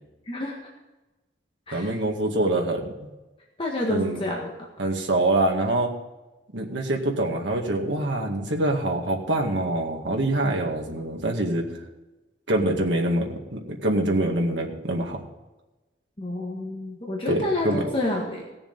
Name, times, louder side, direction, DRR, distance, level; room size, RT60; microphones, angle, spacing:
voice 1, 0.3-0.7 1.7-2.0 3.6-4.5 16.2-18.4, left 1 dB, 30° left, -1 dB, 1.6 m, -29 dB
voice 2, 1.7-2.8 3.9-4.2 4.8-5.9 6.5-11.7 12.5-15.2 17.3-17.8, right 1 dB, 85° right, 1 dB, 2.1 m, -25 dB
17.0 x 7.0 x 5.3 m, 1.1 s
head